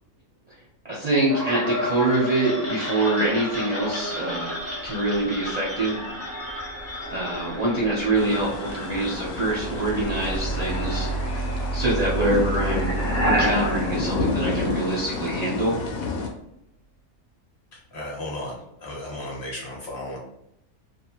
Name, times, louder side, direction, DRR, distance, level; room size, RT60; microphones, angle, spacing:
voice 1, 0.9-6.0 7.1-11.1 11.7-13.0 13.2-15.8, right 2 dB, 50° right, -6 dB, 0.5 m, -25 dB
sound 1, 1.3-15.2, right 1 dB, 25° left, 0.3 m, -30 dB
sound 2, 8.2-16.3, left 3 dB, 80° left, 1.0 m, -30 dB
voice 2, 17.7-20.2, left 1 dB, 45° left, -3 dB, 1.0 m, -35 dB
2.6 x 2.3 x 2.8 m, 0.80 s
omnidirectional pair, 1.5 m